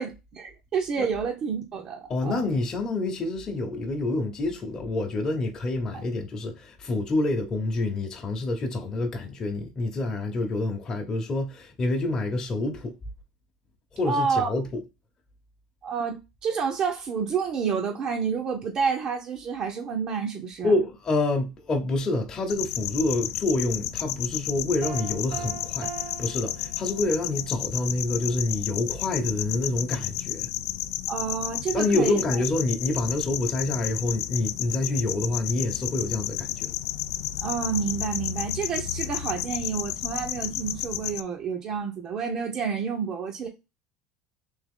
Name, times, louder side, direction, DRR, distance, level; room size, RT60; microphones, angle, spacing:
voice 1, 0.0-2.4 5.9-6.0 14.0-14.5 15.8-20.7 31.1-32.2 37.4-43.5, right 6 dB, 40° right, 0.7 m, -29 dB
voice 2, 2.1-12.9 13.9-14.8 20.6-30.5 31.7-36.7, left 2 dB, 30° left, 0.9 m, -27 dB
sound 1, 22.5-41.2, left 13 dB, 90° left, 0.3 m, -32 dB
Piano, 24.8-27.4, right 6 dB, 75° right, 0.5 m, -40 dB
3.5 x 3.0 x 3.6 m
supercardioid pair, 125°, 2 cm